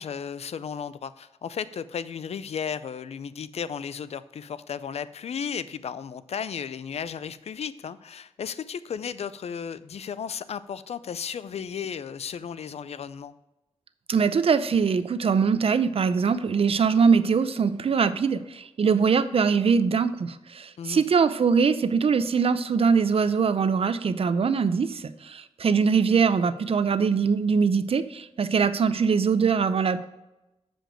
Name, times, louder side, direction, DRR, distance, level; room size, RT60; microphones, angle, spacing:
voice 1, 0.0-13.3 20.8-21.0, left 7 dB, 75° left, 15 dB, 0.4 m, -34 dB
voice 2, 14.1-30.1, right 5 dB, 60° right, 13 dB, 0.5 m, -22 dB
7.6 x 5.1 x 5.0 m, 0.98 s
wide cardioid pair, 80°, 11 cm